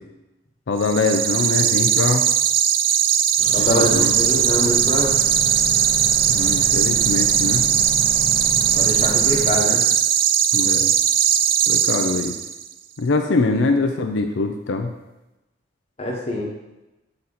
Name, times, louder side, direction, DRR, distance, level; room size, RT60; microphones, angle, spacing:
voice 1, 0.7-2.2 3.6-4.1 6.3-7.6 10.5-10.9 11.7-12.3 13.0-14.9, left 3 dB, 90° left, 4 dB, 0.5 m, -23 dB
sound 1, 0.8-12.6, right 9 dB, 50° right, 0.4 m, -19 dB
sound 2, 3.4-9.5, equal, 85° right, 1.9 m, -31 dB
voice 2, 3.5-5.2 8.7-9.9 16.0-16.5, left 1 dB, 35° left, -2 dB, 1.3 m, -24 dB
7.7 x 4.3 x 4.1 m, 1.0 s
head